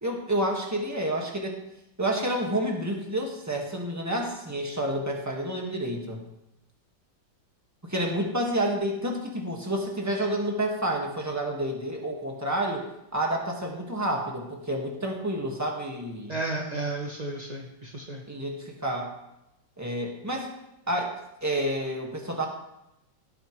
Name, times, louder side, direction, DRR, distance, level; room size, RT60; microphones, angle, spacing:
voice 1, 0.0-1.6 2.0-6.2 7.9-16.3 18.3-19.1 19.8-20.5 20.9-21.1 21.4-22.5, right 1 dB, 10° right, 0 dB, 1.6 m, -29 dB
voice 2, 5.6-6.0 16.3-18.2, right 2 dB, 30° right, -1 dB, 0.8 m, -33 dB
17.5 x 8.7 x 3.2 m, 0.88 s
omnidirectional pair, 2.2 m